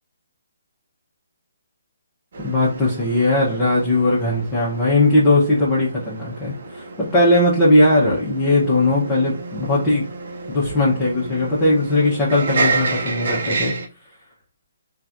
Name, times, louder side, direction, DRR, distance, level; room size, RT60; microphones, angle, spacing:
sound 1, 2.3-13.9, right 3 dB, 60° right, 0.7 m, -30 dB
voice 1, 2.4-10.1 10.5-13.8, left 1 dB, 15° left, -8 dB, 0.9 m, -18 dB
3.1 x 2.4 x 2.6 m, 0.35 s
hypercardioid pair, 155°, 0 cm